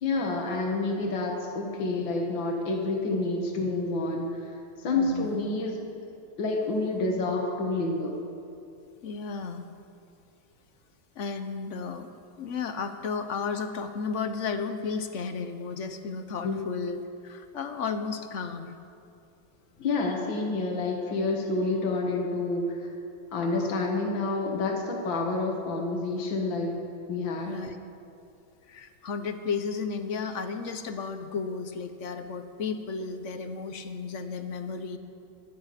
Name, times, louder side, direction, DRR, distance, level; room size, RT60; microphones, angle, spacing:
voice 1, 0.0-4.5 4.8-5.8 6.4-8.2 16.4-16.6 19.8-22.9 23.3-26.7 27.1-27.5, left 3 dB, 70° left, 0 dB, 2.3 m, -28 dB
voice 2, 4.9-5.5 9.0-9.7 11.2-12.1 12.4-18.8 27.5-27.8 28.7-35.0, left 5 dB, 50° left, 8 dB, 0.9 m, -33 dB
25.5 x 10.5 x 5.1 m, 2.6 s
omnidirectional pair, 2.2 m